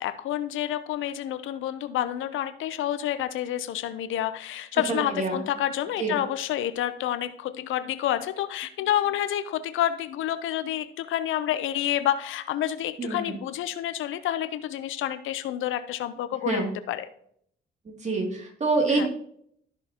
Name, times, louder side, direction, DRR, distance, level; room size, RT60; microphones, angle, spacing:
voice 1, 0.0-17.1 18.9-19.1, left 11 dB, 80° left, 13 dB, 0.7 m, -29 dB
voice 2, 4.9-5.4 6.0-6.2 13.0-13.4 16.4-16.7 18.0-19.1, right 3 dB, 35° right, 1 dB, 2.7 m, -26 dB
13.0 x 6.4 x 2.9 m, 0.68 s
cardioid pair, 90°, 20 cm